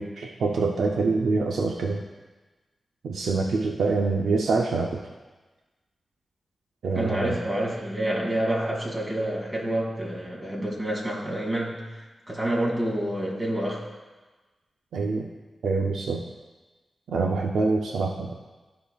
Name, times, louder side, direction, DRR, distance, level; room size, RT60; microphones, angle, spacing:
voice 1, 0.0-2.0 3.0-5.0 6.8-7.3 14.9-15.3 15.6-16.2 17.1-18.4, right 3 dB, 90° right, 1 dB, 0.5 m, -25 dB
voice 2, 7.0-13.9, right 1 dB, 35° right, -3 dB, 2.5 m, -28 dB
14.5 x 5.0 x 2.3 m, 1.2 s
cardioid pair, 55°, 0 cm